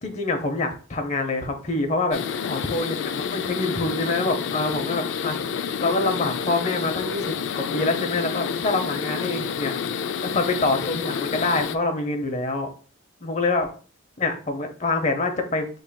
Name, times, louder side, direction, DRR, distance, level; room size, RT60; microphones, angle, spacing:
voice 1, 0.0-12.7 13.2-13.7 14.2-15.7, left 2 dB, 35° left, 5 dB, 0.6 m, -26 dB
sound 1, 2.1-11.8, left 7 dB, 60° left, 0.3 m, -29 dB
7.1 x 3.0 x 2.2 m, 0.40 s
head